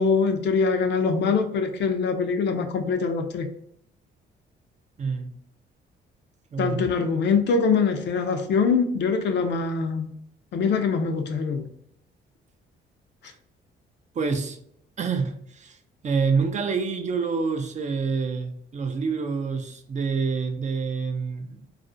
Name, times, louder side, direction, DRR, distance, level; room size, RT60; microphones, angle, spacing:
voice 1, 0.0-3.5 6.6-10.1 10.5-11.6, left 5 dB, 65° left, 0.5 m, -23 dB
voice 2, 5.0-5.3 6.5-6.9 13.2-13.4 14.1-14.6 15.0-15.8 16.0-21.7, right 5 dB, 35° right, 0.4 m, -27 dB
2.4 x 2.0 x 2.5 m
cardioid pair, 90°, 20 cm